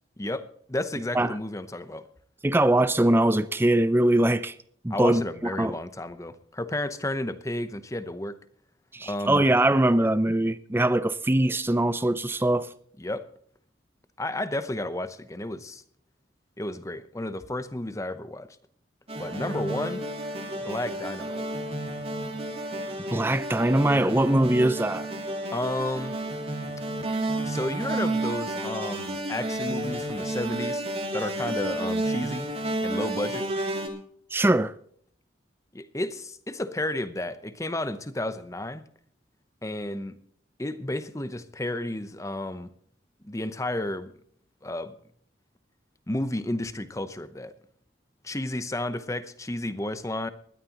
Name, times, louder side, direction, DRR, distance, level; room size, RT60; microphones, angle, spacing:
voice 1, 0.2-2.1 4.9-8.4 9.0-9.4 13.0-13.3 14.2-15.8 16.6-18.6 19.2-20.0 20.6-21.5 25.5-26.2 27.4-30.8 31.1-32.5 32.8-33.5 35.7-38.8 39.6-40.1 40.6-42.7 43.2-44.1 44.6-44.9 46.1-47.5 48.2-50.3, left 1 dB, 15° left, 0.8 m, -32 dB
voice 2, 2.4-4.5 4.8-5.2 5.6-5.7 8.9-12.7 23.1-25.1 34.3-34.7, right 1 dB, 10° right, 0.4 m, -22 dB
sound 1, 19.1-33.9, right 1 dB, 30° right, 2.3 m, -31 dB
20.5 x 13.0 x 3.0 m
head